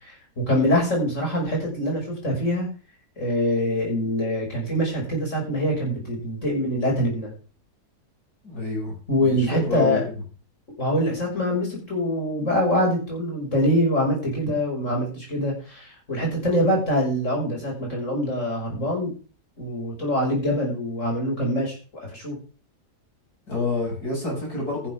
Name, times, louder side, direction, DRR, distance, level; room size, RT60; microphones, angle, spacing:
voice 1, 0.0-2.7 3.2-7.3 9.1-10.0 10.8-19.1 19.6-21.8 22.1-22.4, equal, 45° left, -1 dB, 6.4 m, -24 dB
voice 2, 8.4-10.2 23.5-24.9, left 3 dB, 70° left, -1 dB, 7.3 m, -29 dB
14.5 x 11.0 x 3.7 m, 0.36 s
omnidirectional pair, 1.7 m